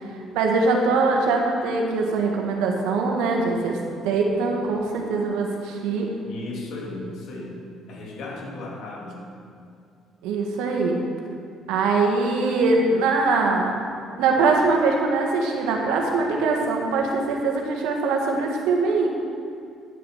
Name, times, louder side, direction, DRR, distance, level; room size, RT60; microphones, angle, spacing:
voice 1, 0.3-3.8 4.0-6.1 10.2-11.0 11.7-13.7 14.2-19.1, right 3 dB, 85° right, 1 dB, 1.6 m, -22 dB
voice 2, 6.2-7.6 7.9-9.2, left 2 dB, 70° left, -3 dB, 2.7 m, -35 dB
10.5 x 7.9 x 5.6 m, 2.4 s
supercardioid pair, 75°, 0 cm